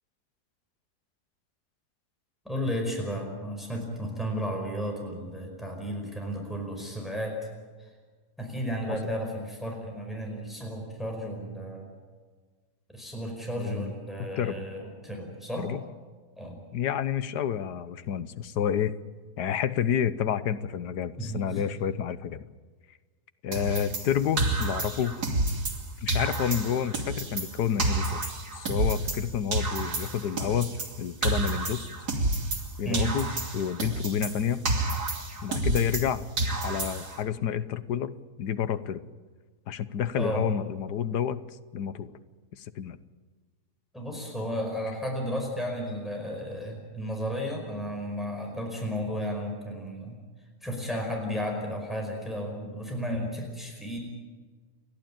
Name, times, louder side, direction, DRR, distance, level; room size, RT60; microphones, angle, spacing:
voice 1, 2.4-7.4 8.4-11.9 12.9-15.7 16.4-16.6 21.2-21.4 32.8-33.1 40.2-40.5 43.9-50.2 50.6-54.0, equal, ahead, 1 dB, 5.0 m, -33 dB
voice 2, 13.6-13.9 14.2-14.7 15.6-15.8 16.7-18.9 19.4-22.5 23.4-25.2 26.0-28.2 28.5-30.7 31.0-31.9 32.8-33.3 33.5-34.6 35.4-36.3 36.6-39.0 39.7-41.4 41.7-42.1 42.5-43.0, left 9 dB, 85° left, 14 dB, 1.5 m, -29 dB
sound 1, 23.5-25.8 26.1-29.2 29.5-32.7 32.9-36.1 36.4-37.2, right 2 dB, 75° right, 3.3 m, -29 dB
29.5 x 12.0 x 8.9 m, 1.4 s
omnidirectional pair, 1.7 m